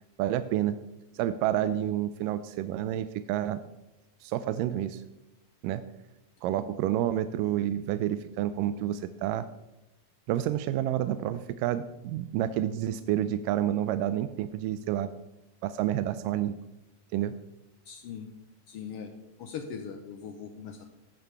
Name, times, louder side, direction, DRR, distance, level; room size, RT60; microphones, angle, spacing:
voice 1, 0.2-0.8 1.1-3.6 4.2-5.0 5.6-5.8 6.4-9.5 10.3-15.1 15.6-16.6 17.1-17.3, right 12 dB, 85° right, 11 dB, 2.2 m, -29 dB
voice 2, 17.9-18.3 18.7-19.1 19.4-20.9, left 7 dB, 85° left, 5 dB, 1.3 m, -40 dB
14.5 x 10.5 x 3.4 m, 0.94 s
omnidirectional pair, 3.9 m